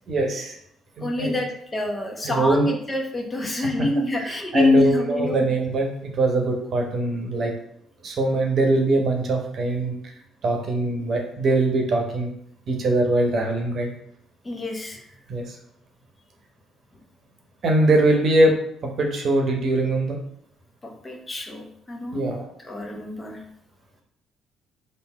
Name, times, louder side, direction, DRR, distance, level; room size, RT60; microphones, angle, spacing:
voice 1, 0.1-0.5 1.0-1.3 2.2-2.7 3.5-3.9 4.2-7.5 8.0-9.9 10.4-12.3 12.7-13.9 15.3-15.6 17.6-18.5 18.8-20.2 22.1-22.4, right 2 dB, 55° right, 2 dB, 0.9 m, -22 dB
voice 2, 1.0-5.5 14.4-15.0 20.8-22.3 22.6-23.4, left 2 dB, 25° left, 2 dB, 0.9 m, -25 dB
3.5 x 2.6 x 4.6 m, 0.71 s
hypercardioid pair, 50°, 0 cm